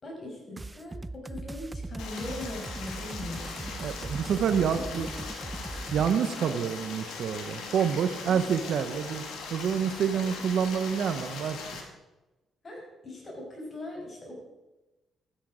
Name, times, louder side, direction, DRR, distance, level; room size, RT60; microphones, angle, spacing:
voice 1, 0.0-3.7 4.5-5.3 6.3-6.6 8.3-8.8 10.1-10.3 12.6-14.3, left 1 dB, 35° left, 0 dB, 5.4 m, -41 dB
sound 1, 0.6-6.1, right 2 dB, 20° right, 0.4 m, -39 dB
Stream, 2.0-11.8, left 4 dB, 85° left, 2.4 m, -40 dB
voice 2, 3.8-5.1 5.9-9.2 9.5-11.6, right 7 dB, 70° right, 9 dB, 0.8 m, -27 dB
13.0 x 10.0 x 5.0 m, 1.0 s
cardioid pair, 90°, 0 cm